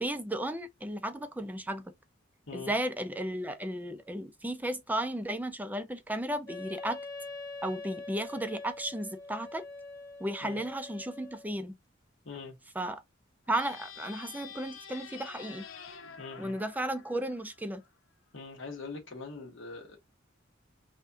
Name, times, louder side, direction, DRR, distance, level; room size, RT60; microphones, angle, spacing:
voice 1, 0.0-1.9 2.5-7.0 7.6-9.6 10.2-11.7 12.8-13.0 13.5-15.6 16.4-17.8, right 1 dB, 10° right, 0.5 m, -34 dB
Wind instrument woodwind instrument, 6.5-11.5, left 2 dB, 15° left, 1.0 m, -44 dB
voice 2, 12.2-12.6 16.2-16.6 18.3-20.0, left 4 dB, 70° left, 1.5 m, -43 dB
sound 1, 13.5-17.9, left 7 dB, 90° left, 0.9 m, -48 dB
5.3 x 2.3 x 2.7 m
head